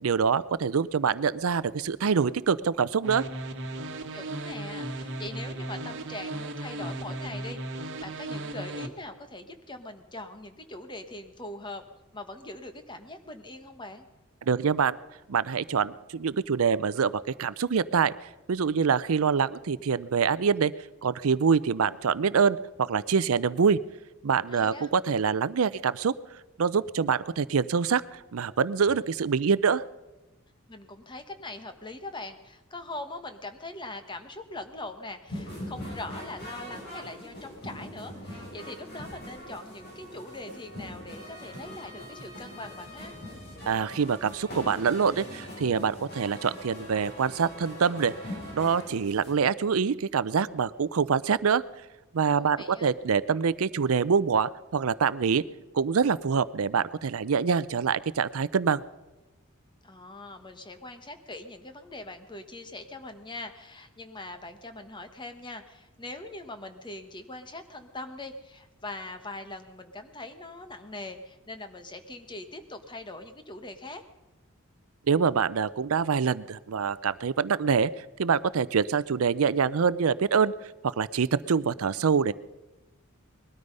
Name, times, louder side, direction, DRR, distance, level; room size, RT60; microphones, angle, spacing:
voice 1, 0.0-3.2 14.4-15.0 15.3-17.1 17.4-18.1 18.5-20.7 21.0-23.8 24.2-26.1 26.6-29.8 43.7-48.1 48.5-51.6 52.1-55.4 55.7-58.8 75.1-80.5 80.8-82.3, right 6 dB, 75° right, 18 dB, 0.5 m, -25 dB
sound 1, 3.0-8.9, right 1 dB, 60° right, 1.4 m, -36 dB
voice 2, 4.1-11.8 12.1-14.1 24.5-24.9 30.7-43.1 52.4-52.9 59.8-74.0, left 2 dB, 20° left, 8 dB, 1.3 m, -42 dB
sound 2, 35.3-49.3, equal, 50° left, 6.8 m, -42 dB
20.0 x 13.0 x 5.4 m, 1.1 s
head